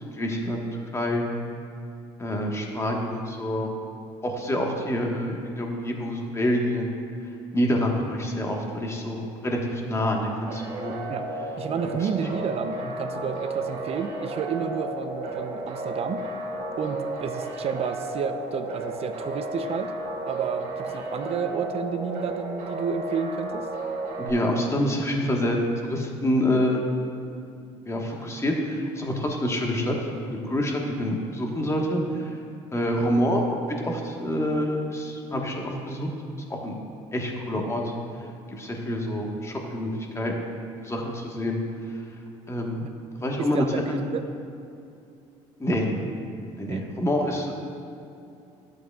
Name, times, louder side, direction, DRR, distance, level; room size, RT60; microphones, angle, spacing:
voice 1, 0.2-0.7 0.9-1.2 2.2-3.7 4.2-6.9 7.5-11.0 12.0-12.1 24.2-25.6 25.8-27.0 27.8-32.4 32.7-33.4 33.8-36.1 36.4-36.7 37.1-37.9 38.5-41.6 42.5-42.8 43.2-44.0 45.6-45.9 46.6-47.5, left 1 dB, 20° left, 0 dB, 1.3 m, -27 dB
sound 1, 10.5-24.3, right 1 dB, 70° right, 1.4 m, -33 dB
voice 2, 11.6-16.3 16.8-19.9 20.3-23.7 42.8-42.9 43.4-44.2 46.7-46.9, right 7 dB, 50° right, 9 dB, 0.6 m, -31 dB
12.0 x 7.8 x 2.4 m, 2.6 s
supercardioid pair, 75°, 14 cm